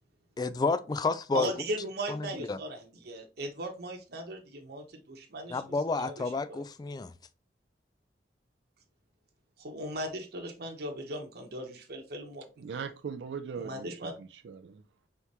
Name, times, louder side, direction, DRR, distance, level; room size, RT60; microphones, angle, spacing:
voice 1, 0.4-1.5 2.1-2.6 5.5-7.1, left 3 dB, 25° left, 0.3 m, -30 dB
voice 2, 1.3-6.2 6.5-6.6 9.6-12.5 13.6-14.1, right 1 dB, 65° right, 0.9 m, -38 dB
voice 3, 12.6-14.8, right 6 dB, 90° right, 0.4 m, -40 dB
4.6 x 3.5 x 2.8 m
head